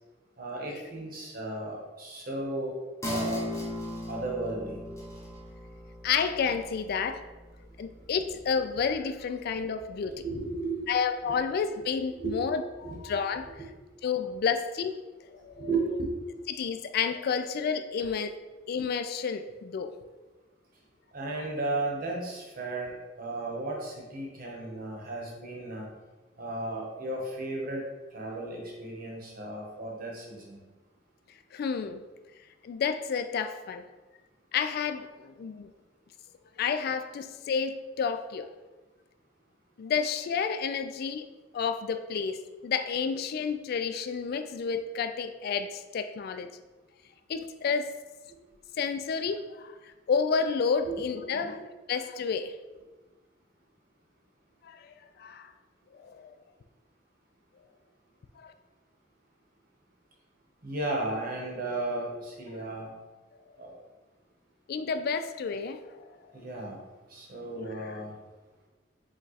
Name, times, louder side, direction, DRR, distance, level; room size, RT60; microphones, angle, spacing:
voice 1, 0.4-2.8 3.1-3.4 4.1-4.8 10.1-11.0 11.2-11.4 12.2-12.4 12.8-13.0 15.5-16.1 21.1-25.9 26.4-27.8 28.1-30.6 50.8-51.6 60.6-62.9 63.6-63.8 66.3-66.8 67.1-68.1, right 2 dB, 50° right, -1 dB, 1.1 m, -34 dB
sound 1, 3.0-10.0 10.4-10.5, left 1 dB, 15° left, 0.8 m, -39 dB
voice 2, 6.0-7.2 7.8-10.2 10.9-13.6 14.0-15.0 15.3-15.7 16.5-18.3 18.7-19.9 31.5-32.0 32.6-33.8 34.5-35.7 36.6-38.5 39.8-41.3 41.5-46.5 47.3-47.9 48.8-49.7 50.1-51.6 51.9-52.5 54.6-55.5 55.9-56.3 58.4-58.5 64.7-66.1 67.6-67.9, left 6 dB, 55° left, 9 dB, 0.3 m, -30 dB
5.1 x 2.4 x 4.1 m, 1.2 s
head